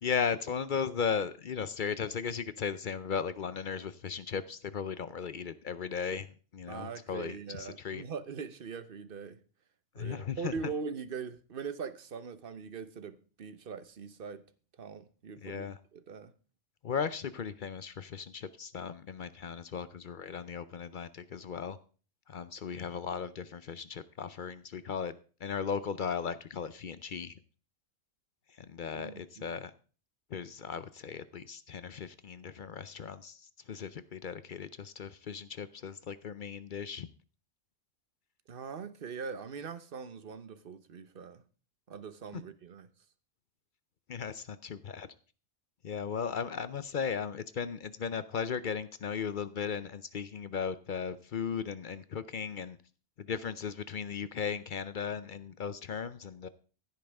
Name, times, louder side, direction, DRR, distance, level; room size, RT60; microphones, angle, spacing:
voice 1, 0.0-6.3 6.5-8.0 10.0-10.5 15.4-15.8 16.8-21.8 22.3-25.1 25.4-27.4 28.6-29.7 30.3-37.1 42.3-42.4 44.1-45.1 45.8-52.8 53.2-56.5, left 6 dB, 55° left, 0.5 m, -36 dB
voice 2, 6.7-9.4 10.0-14.4 14.8-16.3 28.9-29.6 38.5-41.4 41.9-42.9, right 5 dB, 45° right, 1.0 m, -41 dB
15.5 x 9.1 x 3.5 m
omnidirectional pair, 1.4 m